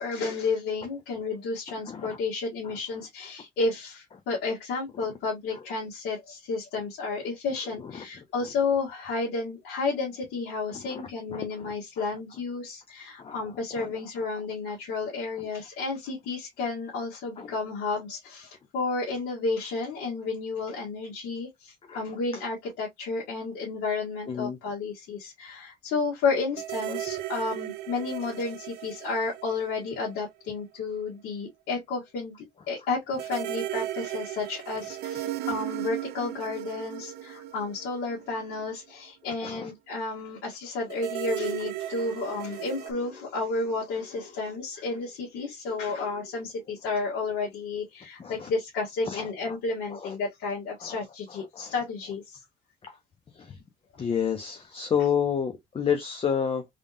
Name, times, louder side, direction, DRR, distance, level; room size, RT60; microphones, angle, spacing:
voice 1, 0.0-32.3 32.7-52.4, left 4 dB, 85° left, 1.8 m, -32 dB
voice 2, 1.9-2.2 2.6-2.7 5.0-5.1 7.8-8.0 10.7-11.0 11.3-12.0 13.2-13.4 13.8-13.9 17.4-17.5 21.9-22.0 24.3-24.6 39.2-39.7 48.2-48.5 49.0-49.6 49.9-50.1 50.8-51.0 51.3-51.7 52.8-53.0 53.3-53.6 54.0-56.7, left 7 dB, 35° left, 0.8 m, -31 dB
sound 1, 26.6-30.3 30.6-30.7 33.2-38.6 40.9-42.9, right 14 dB, 75° right, 0.6 m, -36 dB
3.6 x 3.5 x 2.5 m
cardioid pair, 110°, 17 cm